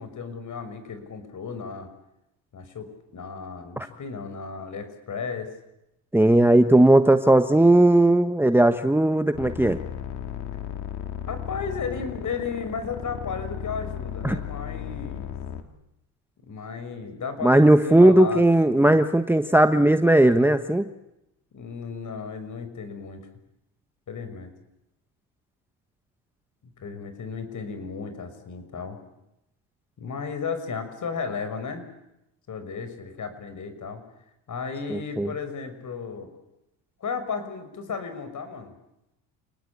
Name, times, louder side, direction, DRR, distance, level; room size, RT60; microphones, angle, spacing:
voice 1, 0.0-1.9 2.5-5.6 11.2-15.3 16.4-19.0 21.5-23.3 24.1-24.5 26.6-29.0 30.0-31.8 32.5-34.0 34.5-36.3 37.0-38.7, left 5 dB, 45° left, 10 dB, 6.1 m, -34 dB
voice 2, 6.1-9.8 14.2-14.4 17.4-20.9 34.9-35.3, right 1 dB, 5° right, 10 dB, 1.3 m, -17 dB
sound 1, 9.3-15.6, left 9 dB, 70° left, 3.0 m, -35 dB
29.0 x 19.5 x 8.7 m, 0.87 s
supercardioid pair, 80°, 42 cm